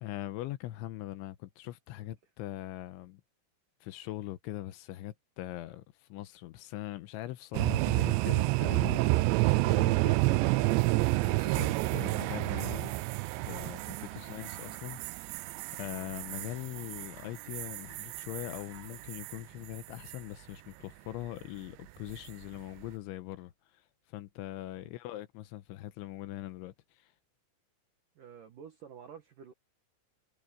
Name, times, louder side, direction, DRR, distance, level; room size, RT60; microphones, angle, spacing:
voice 1, 0.0-3.2 3.8-9.3 9.6-10.4 11.1-12.9 13.4-27.1, left 15 dB, 80° left, 3.1 m, -42 dB
sound 1, 7.5-19.4 19.7-20.2 22.1-22.4, right 20 dB, 90° right, 2.6 m, -30 dB
voice 2, 28.2-29.5, right 7 dB, 65° right, 2.2 m, -50 dB
omnidirectional pair, 5.7 m